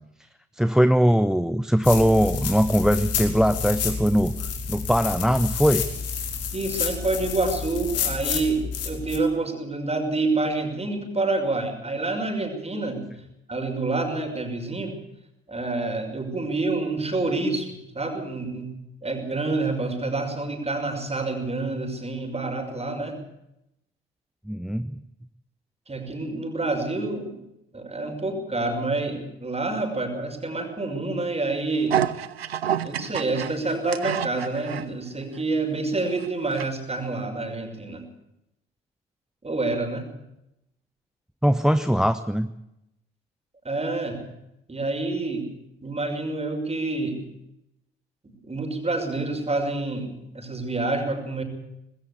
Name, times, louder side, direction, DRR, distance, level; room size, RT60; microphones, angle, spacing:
voice 1, 0.5-5.9 24.5-25.0 41.4-42.5, equal, ahead, 13 dB, 0.9 m, -21 dB
sound 1, 1.8-9.2, left 6 dB, 55° left, 4.5 m, -29 dB
voice 2, 6.5-13.0 13.5-15.0 15.5-18.7 19.0-23.2 25.9-27.4 27.7-32.0 32.8-38.0 39.4-40.1 43.6-44.2 44.7-45.5 45.8-47.2 48.2-51.4, right 3 dB, 20° right, 5 dB, 5.9 m, -27 dB
sound 2, 31.9-34.9 35.4-35.5 36.0-36.7 37.0-37.1, right 9 dB, 85° right, 0.7 m, -28 dB
20.5 x 16.5 x 8.3 m, 0.85 s
figure-of-eight pair, 50°, 30 cm